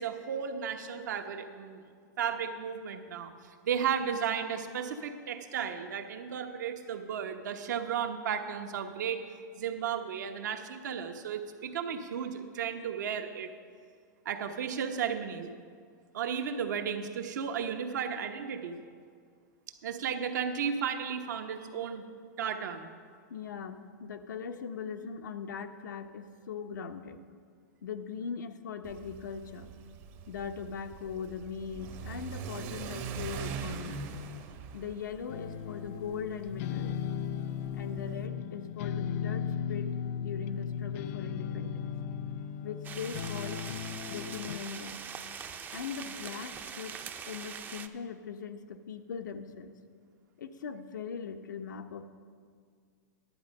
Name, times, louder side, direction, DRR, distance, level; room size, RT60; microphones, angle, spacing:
voice 1, 0.0-1.8 2.2-3.3 3.6-9.2 9.5-13.5 14.2-15.5 16.1-18.8 19.8-22.0 22.4-22.9, right 7 dB, 75° right, 6 dB, 1.0 m, -34 dB
voice 2, 23.3-27.2 27.8-29.7 30.3-34.0 34.7-36.9 37.7-41.9 42.6-43.6 44.1-45.0 45.7-47.0 47.3-49.7 50.4-52.0, left 6 dB, 90° left, 7 dB, 0.8 m, -40 dB
Car / Accelerating revving vroom, 28.8-38.3, right 6 dB, 45° right, 0.9 m, -42 dB
sound 1, 35.3-44.6, left 8 dB, 50° left, 0.4 m, -36 dB
sound 2, 42.8-47.9, right 6 dB, 20° right, 0.5 m, -42 dB
11.0 x 8.3 x 5.3 m, 2.1 s
hypercardioid pair, 135°, 10 cm